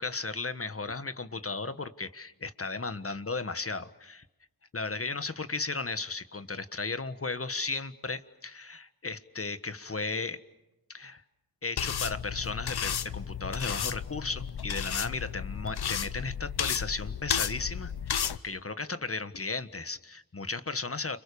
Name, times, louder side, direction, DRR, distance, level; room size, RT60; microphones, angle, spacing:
voice 1, 0.0-4.2 4.7-10.4 10.9-11.2 11.6-21.2, left 3 dB, 35° left, 11 dB, 1.6 m, -35 dB
sound 1, 11.8-18.4, left 8 dB, 85° left, 0.9 m, -33 dB
30.0 x 27.5 x 7.0 m, 0.94 s
wide cardioid pair, 60°, 37 cm